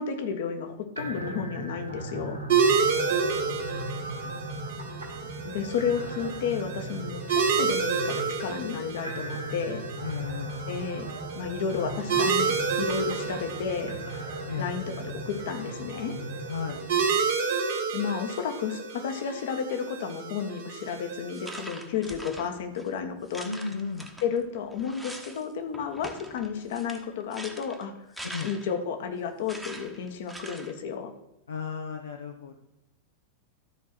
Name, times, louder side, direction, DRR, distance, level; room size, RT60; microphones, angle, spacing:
voice 1, 0.0-2.4 5.4-9.8 10.7-11.1 11.3-14.0 14.6-16.1 17.9-23.5 24.2-27.9 28.4-31.1, left 6 dB, 55° left, 7 dB, 1.3 m, -32 dB
sound 1, 1.0-17.1, right 1 dB, 85° right, 1.8 m, -38 dB
sound 2, 2.5-21.6, right 5 dB, 55° right, 1.8 m, -30 dB
voice 2, 2.9-4.4 10.0-10.7 14.5-14.7 16.5-16.8 23.4-24.1 28.2-28.6 31.5-32.6, left 5 dB, 75° left, 2 dB, 0.8 m, -36 dB
sound 3, 20.7-20.9 21.3-22.9 23.3-25.4 25.7-28.8 29.5-30.8, right 1 dB, 5° right, 1.1 m, -43 dB
12.5 x 4.7 x 6.1 m, 0.92 s
figure-of-eight pair, 90°, 0 cm